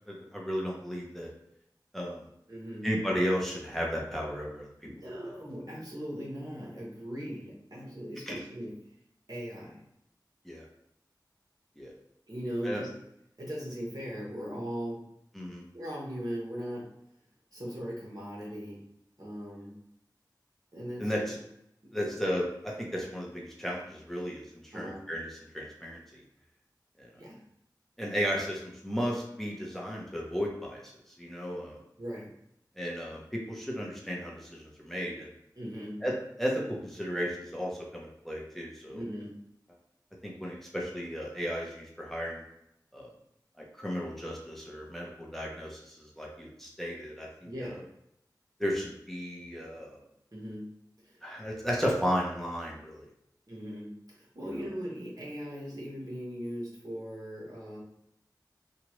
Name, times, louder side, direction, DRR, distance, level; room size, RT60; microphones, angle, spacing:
voice 1, 0.1-1.3 1.9-2.2 2.8-4.7 8.3-8.4 10.5-10.6 11.8-11.9 12.6-12.8 15.4-15.6 21.0-21.4 21.9-24.4 24.7-25.3 25.5-26.0 28.0-30.8 31.2-31.8 32.8-34.6 34.8-35.3 36.0-36.1 36.4-39.0 40.2-42.4 42.9-43.1 43.8-45.8 46.2-47.7 48.6-50.0 51.2-53.1, equal, 5° left, -3 dB, 0.8 m, -34 dB
voice 2, 2.5-2.9 4.8-8.7 9.3-9.8 12.3-12.9 13.4-15.0 15.7-16.9 17.5-18.8 19.2-19.7 20.7-21.3 22.0-22.2 24.7-25.1 27.1-27.4 32.0-32.3 35.5-36.0 38.9-39.3 47.4-47.8 50.3-50.7 51.0-51.2 53.5-57.8, equal, 55° right, -5 dB, 1.2 m, -39 dB
3.0 x 2.4 x 3.0 m, 0.77 s
wide cardioid pair, 45°, 8 cm